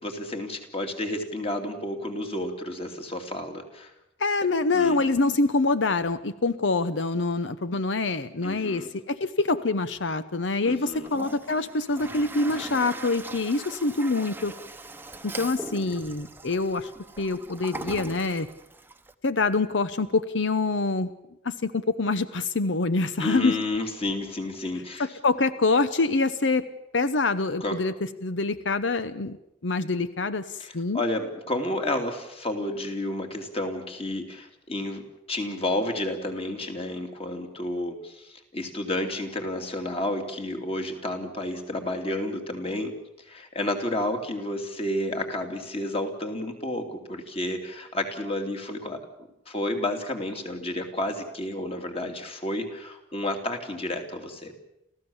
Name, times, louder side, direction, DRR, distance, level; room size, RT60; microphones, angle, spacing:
voice 1, 0.0-3.9 4.7-5.0 8.4-8.9 10.6-11.1 23.2-25.1 27.6-27.8 30.6-42.9 43.2-49.0 49.5-54.5, left 1 dB, 35° left, 4 dB, 2.8 m, -31 dB
voice 2, 4.2-14.5 15.2-16.9 17.2-18.5 19.2-21.1 21.4-23.6 25.0-26.7 26.9-27.9 28.2-29.4 29.6-31.0, left 3 dB, 90° left, 13 dB, 0.9 m, -25 dB
Toilet flush, 10.9-19.1, right 2 dB, 10° right, 0.9 m, -40 dB
30.0 x 15.0 x 7.2 m, 0.87 s
head